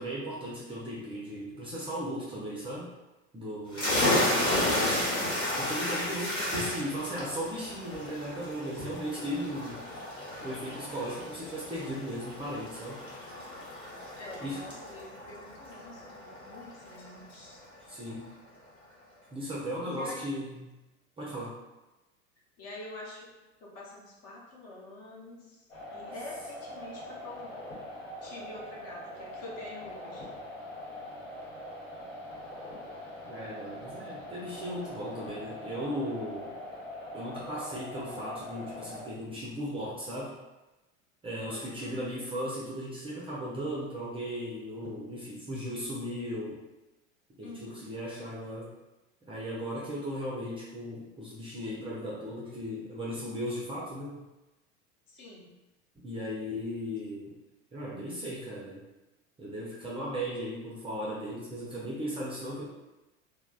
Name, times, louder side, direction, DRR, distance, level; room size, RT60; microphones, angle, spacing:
voice 1, 0.0-2.9 3.3-4.8 5.6-9.8 10.4-13.0 14.4-14.7 17.9-18.3 19.3-20.7 21.2-21.5 33.3-36.5 37.1-40.4 41.2-46.6 47.4-48.7 49.3-54.3 56.0-57.4 57.7-58.8 59.4-62.6, equal, 15° right, -6 dB, 0.5 m, -37 dB
sound 1, 3.7-17.1, left 1 dB, 10° left, 0.9 m, -33 dB
voice 2, 14.2-17.6 19.8-20.4 22.6-23.3 23.6-25.7 25.9-27.5 28.2-30.3 41.5-42.0 47.4-47.9 55.1-55.5, left 2 dB, 40° left, -3 dB, 0.8 m, -46 dB
sound 2, 25.7-39.0, left 1 dB, 75° left, 1.0 m, -43 dB
3.3 x 2.0 x 2.3 m, 1.0 s
figure-of-eight pair, 80°, 39 cm